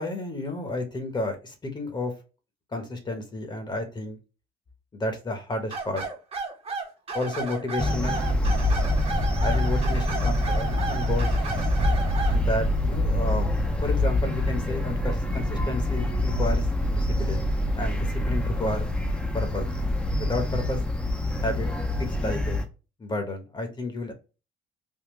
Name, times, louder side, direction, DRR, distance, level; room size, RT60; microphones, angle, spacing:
voice 1, 0.0-2.1 2.7-4.2 4.9-6.0 7.1-8.2 9.4-11.3 12.3-13.5 13.8-17.5 17.8-18.0 18.3-18.9 19.3-19.7 20.2-20.8 21.4-21.7 22.0-22.6 23.0-24.1, left 2 dB, 25° left, 5 dB, 1.0 m, -31 dB
sound 1, 5.7-12.4, right 4 dB, 35° right, 1.0 m, -33 dB
sound 2, 7.8-22.6, left 1 dB, 5° left, 0.6 m, -25 dB
3.6 x 2.2 x 3.0 m, 0.32 s
cardioid pair, 110°, 17 cm